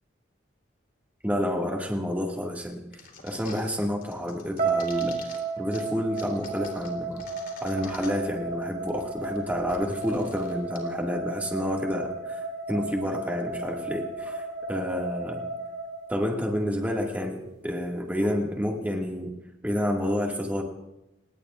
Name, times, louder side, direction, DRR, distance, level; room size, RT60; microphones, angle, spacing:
voice 1, 1.2-2.8 3.2-5.2 5.6-7.3 7.6-15.5 16.1-19.3 19.6-20.6, equal, 10° right, 0 dB, 2.0 m, -29 dB
sound 1, 2.9-3.7 4.0-5.4 5.7-5.8 6.1-8.3 8.6-8.7 8.9-10.8, left 4 dB, 50° left, 3.4 m, -45 dB
sound 2, 4.6-16.7, right 3 dB, 45° right, 3.7 m, -33 dB
30.0 x 18.5 x 2.5 m, 0.96 s
head